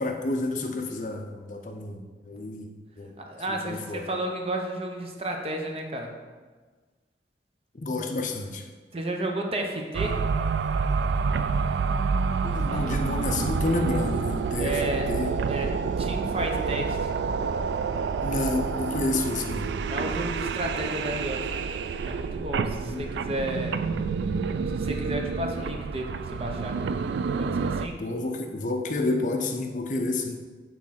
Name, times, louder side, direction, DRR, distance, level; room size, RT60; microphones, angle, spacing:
voice 1, 0.0-3.1 3.5-4.1 7.7-8.6 12.4-14.8 15.1-15.3 18.2-19.7 22.8-23.1 28.0-30.4, left 2 dB, 45° left, 4 dB, 0.5 m, -29 dB
voice 2, 3.3-6.1 8.9-10.2 12.7-12.8 14.6-15.1 15.5-15.7 16.0-17.1 19.9-21.7 22.0-23.8 24.6-26.8 27.4-28.0, right 1 dB, 30° right, 2 dB, 0.7 m, -32 dB
sound 1, 9.9-27.9, right 5 dB, 75° right, 0.3 m, -28 dB
6.3 x 3.6 x 5.7 m, 1.4 s
head